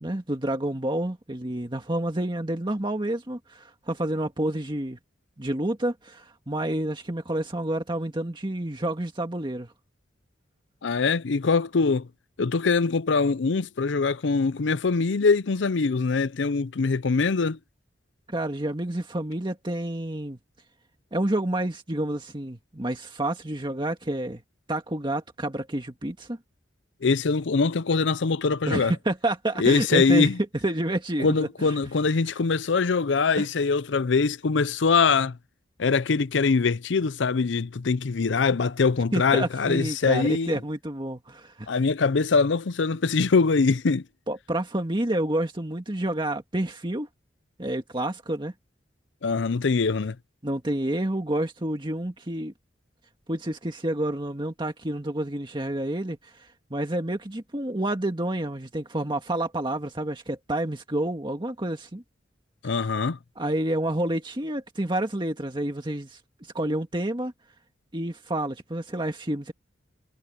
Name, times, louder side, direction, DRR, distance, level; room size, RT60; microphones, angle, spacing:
voice 1, 0.0-5.0 5.4-9.7 18.3-20.4 21.1-24.4 24.7-26.4 28.7-30.3 30.6-31.8 33.4-33.5 39.1-41.7 44.3-47.1 47.6-48.5 50.4-52.5 53.3-62.0 63.4-66.2 66.5-67.3 67.9-69.5, right 1 dB, 25° right, 1.8 m, -29 dB
voice 2, 10.8-12.1 12.4-17.6 27.0-28.9 29.6-30.4 31.2-35.4 35.8-40.6 41.7-44.0 49.2-50.2 62.6-63.2, left 4 dB, 75° left, 0.6 m, -23 dB
head